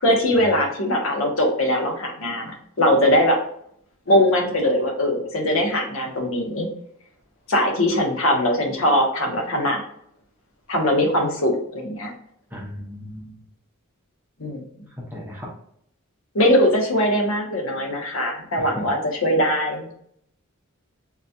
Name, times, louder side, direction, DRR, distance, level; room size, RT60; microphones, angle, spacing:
voice 1, 0.0-3.4 4.1-6.7 7.5-9.8 10.7-12.1 14.4-14.6 16.3-19.9, left 1 dB, 65° left, 1 dB, 0.9 m, -21 dB
voice 2, 12.5-13.4 15.1-15.5 18.6-18.8, left 1 dB, 10° right, -5 dB, 0.7 m, -36 dB
3.8 x 2.8 x 2.2 m, 0.67 s
head